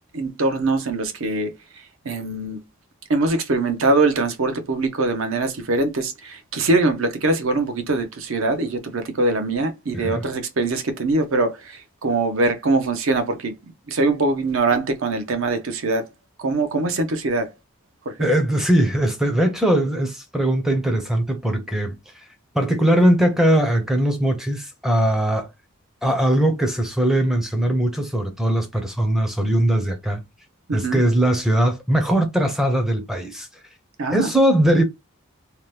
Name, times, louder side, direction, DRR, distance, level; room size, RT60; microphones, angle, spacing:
voice 1, 0.1-1.5 2.0-2.6 3.1-13.6 13.9-16.1 16.4-17.5 18.1-18.3 30.7-31.0 34.0-34.3, right 2 dB, 65° right, 0.6 m, -22 dB
voice 2, 9.9-10.2 18.2-22.0 22.5-25.5 26.0-30.2 30.7-33.5 34.1-34.8, right 1 dB, ahead, 0.5 m, -20 dB
2.8 x 2.1 x 3.2 m
head